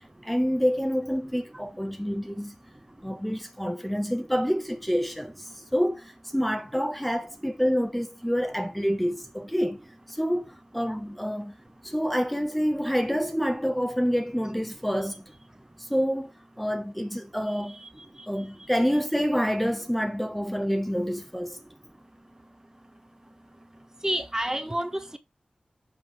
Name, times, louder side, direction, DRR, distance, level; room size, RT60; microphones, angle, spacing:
voice 1, 0.2-2.6 3.0-9.8 10.1-10.5 10.7-11.5 11.8-15.2 15.8-16.3 16.6-17.8 18.3-21.6, equal, 5° left, 1.3 m, -27 dB
voice 2, 24.0-25.2, right 1 dB, 20° right, 1.3 m, -29 dB
7.7 x 5.0 x 3.5 m
wide cardioid pair, 65°, 3 cm